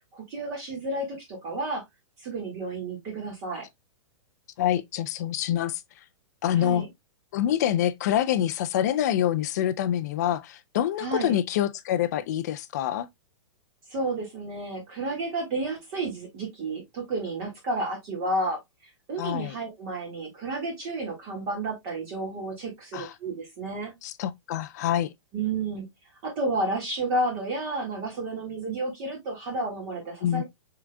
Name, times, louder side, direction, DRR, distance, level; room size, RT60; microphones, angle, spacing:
voice 1, 0.1-1.8 2.2-3.6 6.5-6.9 11.0-11.4 13.9-18.6 19.1-23.9 25.3-25.9 26.2-30.4, right 2 dB, 30° right, 1.8 m, -31 dB
voice 2, 4.6-5.8 6.4-6.9 7.3-13.1 19.2-19.5 22.9-23.1 24.0-25.1 30.2-30.4, left 11 dB, 35° left, 0.4 m, -26 dB
5.9 x 3.8 x 2.2 m
hypercardioid pair, 175°, 16 cm